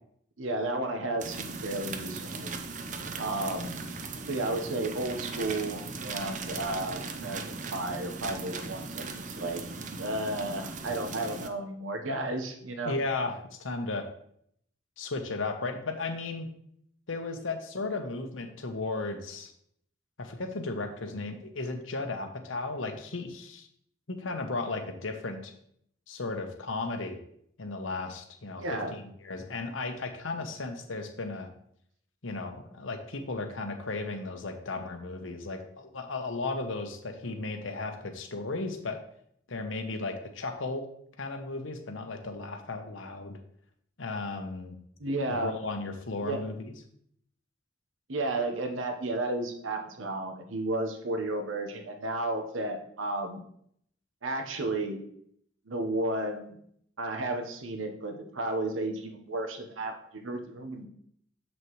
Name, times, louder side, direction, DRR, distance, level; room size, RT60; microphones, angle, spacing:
voice 1, 0.4-2.5 3.2-3.8 4.3-9.6 10.0-12.9 28.6-28.9 45.0-45.5 46.2-46.4 48.1-53.4 54.2-55.0 55.7-56.6 57.0-60.9, right 2 dB, 90° right, 5 dB, 1.1 m, -33 dB
sound 1, 1.2-11.5, right 4 dB, 40° right, 0.6 m, -38 dB
voice 2, 12.8-14.1 15.0-16.5 17.1-19.5 20.2-23.7 24.1-25.5 26.1-27.2 27.6-31.5 32.2-39.0 39.5-40.8 41.2-43.4 44.0-44.8 45.3-46.7, left 3 dB, 85° left, 6 dB, 1.0 m, -35 dB
7.5 x 6.2 x 3.1 m, 0.68 s
head